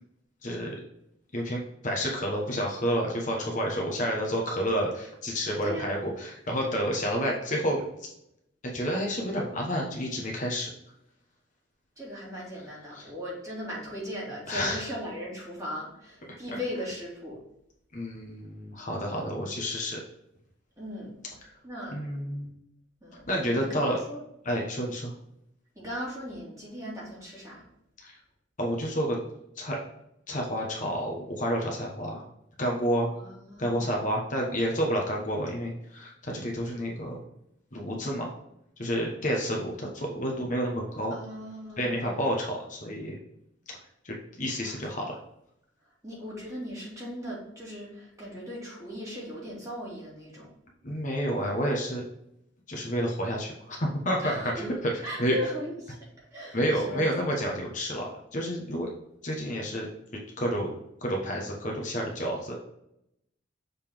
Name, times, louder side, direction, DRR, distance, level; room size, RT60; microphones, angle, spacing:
voice 1, 0.4-0.8 1.3-8.1 8.7-10.7 12.9-13.1 14.5-14.9 16.5-16.6 17.9-20.0 21.9-22.5 23.3-24.0 24.4-25.1 28.0-28.1 28.6-29.2 29.6-29.8 30.3-32.2 32.6-33.1 33.6-37.2 37.7-38.3 38.8-41.1 41.8-43.1 44.0-45.2 50.8-52.0 52.7-54.9 55.2-55.4 56.5-58.9 59.2-62.6, equal, 40° left, -1 dB, 1.2 m, -30 dB
voice 2, 5.6-6.0 12.0-17.4 20.8-21.1 21.6-22.0 23.0-24.2 25.8-27.6 33.1-34.0 41.1-42.2 44.6-45.0 46.0-50.5 54.2-54.7 55.0-56.0 56.3-57.4, equal, 15° right, -5 dB, 2.5 m, -38 dB
6.9 x 4.0 x 3.6 m, 0.79 s
head